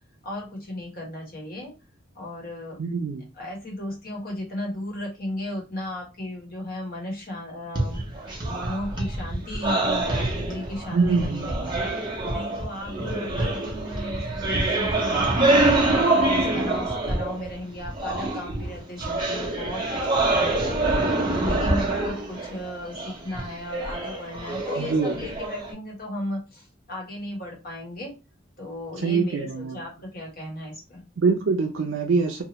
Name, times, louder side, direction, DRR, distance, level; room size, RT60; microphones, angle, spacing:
voice 1, 0.2-1.7 2.1-3.0 3.3-8.0 8.5-11.8 12.3-20.8 21.3-28.1 28.6-31.0, left 1 dB, 50° left, -1 dB, 1.2 m, -35 dB
voice 2, 2.8-3.2 10.9-11.7 24.8-25.2 29.0-29.8 31.2-32.4, right 4 dB, 80° right, 2 dB, 0.4 m, -24 dB
sound 1, 7.8-17.5 17.8-25.7, right 2 dB, 25° right, 0.8 m, -25 dB
2.9 x 2.2 x 2.9 m, 0.29 s
head